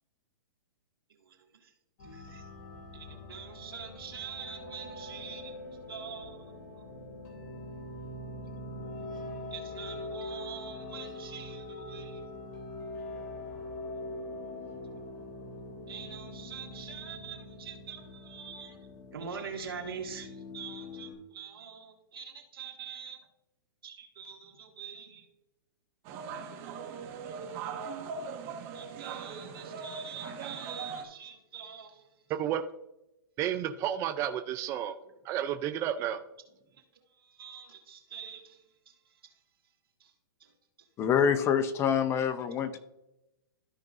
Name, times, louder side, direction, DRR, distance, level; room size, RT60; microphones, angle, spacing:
voice 1, 1.2-1.7 2.1-2.5 2.9-5.5 5.9-6.8 9.5-12.2 15.9-18.8 19.1-23.2 23.8-25.3 28.7-32.1 36.7-36.8 37.1-38.9 40.0-40.1 40.4-40.5, right 7 dB, 80° right, 2.0 m, -44 dB
sound 1, 2.0-21.1, left 2 dB, 40° left, 2.7 m, -43 dB
sound 2, 26.0-31.0, right 5 dB, 40° right, 1.5 m, -40 dB
voice 2, 33.4-34.9 35.3-36.2, right 10 dB, 25° right, 0.4 m, -31 dB
voice 3, 41.0-42.8, left 7 dB, 20° left, 0.6 m, -26 dB
13.5 x 5.2 x 2.6 m
hypercardioid pair, 135°, 12 cm